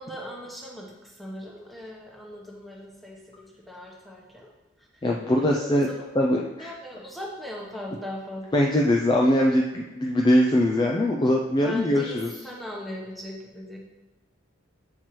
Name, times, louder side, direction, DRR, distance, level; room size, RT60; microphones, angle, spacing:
voice 1, 0.0-4.5 4.8-6.1 6.6-8.5 11.6-13.8, left 1 dB, ahead, -3 dB, 0.9 m, -39 dB
voice 2, 5.0-5.9 6.2-6.7 8.5-12.3, left 1 dB, 20° left, -1 dB, 0.3 m, -22 dB
7.4 x 4.4 x 3.1 m, 1.1 s
head